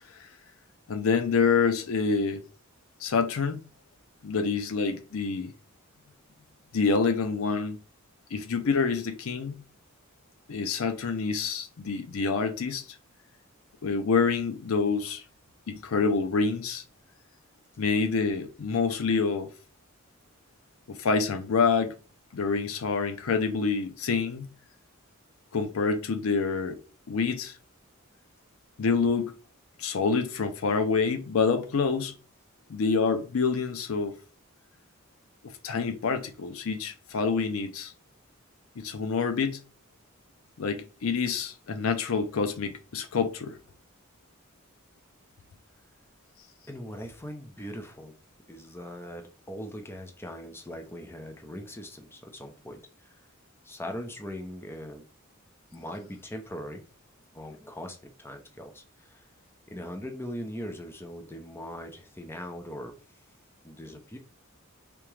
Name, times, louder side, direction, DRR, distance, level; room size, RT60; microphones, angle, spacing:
voice 1, 0.9-2.4 3.0-3.6 4.2-5.5 6.7-7.8 8.3-9.6 10.5-12.9 13.8-15.2 15.7-16.8 17.8-19.5 20.9-21.9 22.3-24.5 25.5-26.8 27.1-27.5 28.8-29.3 29.8-32.1 32.7-34.2 35.6-37.9 38.8-39.6 40.6-43.6, left 5 dB, 75° left, 0.5 m, -27 dB
voice 2, 46.7-48.1 48.5-53.2 53.6-55.1 55.7-56.8 57.3-59.3 59.7-63.2 63.6-64.2, equal, 10° left, 0.5 m, -40 dB
3.5 x 2.9 x 3.1 m
head